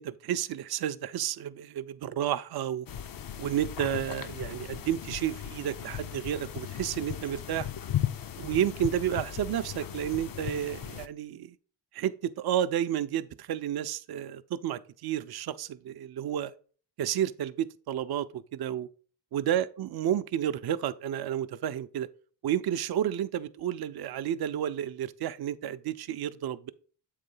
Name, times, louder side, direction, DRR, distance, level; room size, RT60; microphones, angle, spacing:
voice 1, 0.0-2.9 3.4-7.7 8.4-11.5 11.9-16.5 17.0-18.9 19.3-22.1 22.4-26.7, right 10 dB, 60° right, 0.5 m, -31 dB
sound 1, 2.9-11.1, left 10 dB, 50° left, 0.6 m, -37 dB
7.7 x 3.2 x 5.3 m
cardioid pair, 90°, 44 cm